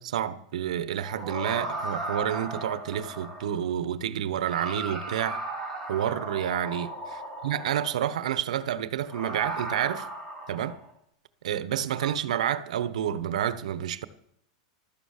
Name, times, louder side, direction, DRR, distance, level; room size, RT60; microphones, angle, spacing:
voice 1, 0.0-5.4 5.9-10.1 10.5-10.8 11.4-14.0, right 10 dB, 90° right, 1.2 m, -29 dB
sound 1, 1.0-3.7 4.3-8.1 9.0-10.9 11.9-12.1, right 2 dB, 10° left, 3.2 m, -36 dB
15.5 x 12.5 x 6.7 m
supercardioid pair, 175°, 4 cm